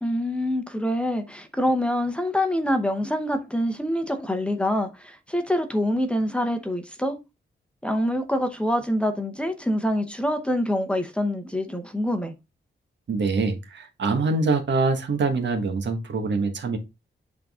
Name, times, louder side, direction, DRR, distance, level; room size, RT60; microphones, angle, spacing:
voice 1, 0.0-7.2 7.8-12.3, equal, 5° left, 0.8 m, -25 dB
voice 2, 13.1-16.8, right 3 dB, 70° right, 1.4 m, -24 dB
8.5 x 3.8 x 3.6 m
wide cardioid pair, 160°, 19 cm